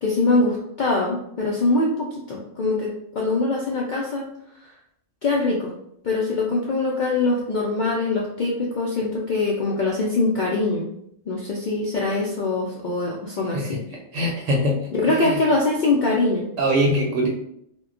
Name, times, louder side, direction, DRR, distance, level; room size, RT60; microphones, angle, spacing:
voice 1, 0.0-2.9 3.2-4.2 4.6-4.7 5.2-5.7 6.0-10.9 11.3-13.8 14.9-16.5, left 3 dB, 70° left, -3 dB, 0.4 m, -23 dB
voice 2, 14.1-14.8 15.1-15.4 16.6-17.3, equal, 75° right, -1 dB, 0.9 m, -22 dB
2.2 x 2.2 x 3.6 m, 0.73 s
omnidirectional pair, 1.3 m